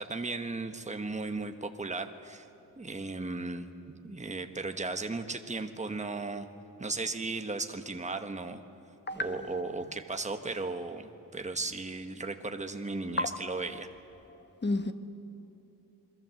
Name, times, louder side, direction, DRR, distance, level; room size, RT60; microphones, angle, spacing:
voice 1, 0.0-2.4 2.8-6.5 6.8-8.6 9.2-13.9, right 3 dB, 20° right, 1.2 m, -36 dB
voice 2, 9.1-9.5 13.2-13.3 14.6-14.9, left 2 dB, 30° left, 1.1 m, -30 dB
28.5 x 22.0 x 7.7 m
wide cardioid pair, 170°, 38 cm